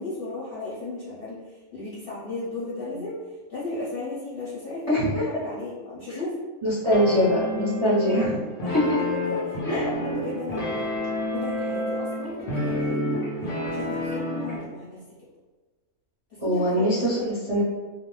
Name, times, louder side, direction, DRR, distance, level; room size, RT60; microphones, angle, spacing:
voice 1, 0.0-3.2 3.5-6.4 8.1-10.9 11.3-13.3 13.7-15.0 16.3-17.0, left 2 dB, 50° left, -9 dB, 0.7 m, -35 dB
voice 2, 4.9-5.2 6.1-6.2 6.6-8.4 8.7-8.8 9.6-9.9 16.4-17.6, equal, 30° right, -11 dB, 0.7 m, -23 dB
sound 1, 6.9-14.6, left 1 dB, 80° left, 0.3 m, -29 dB
2.5 x 2.1 x 3.1 m, 1.3 s
omnidirectional pair, 1.6 m